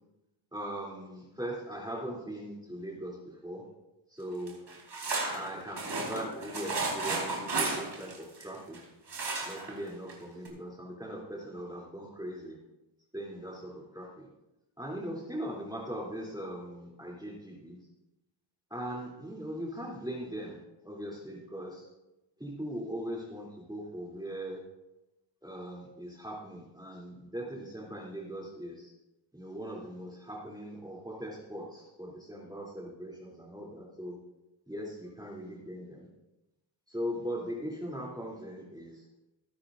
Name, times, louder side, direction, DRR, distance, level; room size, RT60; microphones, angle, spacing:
voice 1, 0.5-3.6 4.1-4.6 5.3-8.8 9.4-12.6 13.1-14.3 14.8-17.8 18.7-21.9 22.4-24.6 25.4-28.9 29.3-34.2 34.7-36.1 36.9-39.0, equal, 10° right, -4 dB, 3.1 m, -40 dB
sound 1, 4.5-8.8 9.1-9.7 10.1-10.2 10.4-10.5, right 3 dB, 60° right, 4.4 m, -33 dB
20.5 x 10.0 x 2.6 m, 0.99 s
cardioid pair, 75°, 48 cm